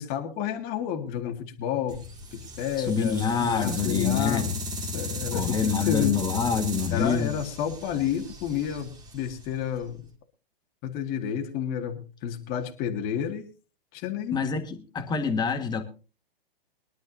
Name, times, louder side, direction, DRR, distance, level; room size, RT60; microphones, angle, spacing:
voice 1, 0.0-2.0 2.3-4.5 4.9-6.2 6.9-10.0 10.8-13.4 13.9-14.3, left 9 dB, 30° left, 4 dB, 2.2 m, -30 dB
sound 1, 1.9-10.0, left 2 dB, 15° right, 2.5 m, -36 dB
voice 2, 2.8-4.6 5.3-7.4 14.3-15.8, left 6 dB, 15° left, 7 dB, 1.7 m, -26 dB
22.5 x 11.5 x 2.7 m, 0.35 s
hypercardioid pair, 135°, 30 cm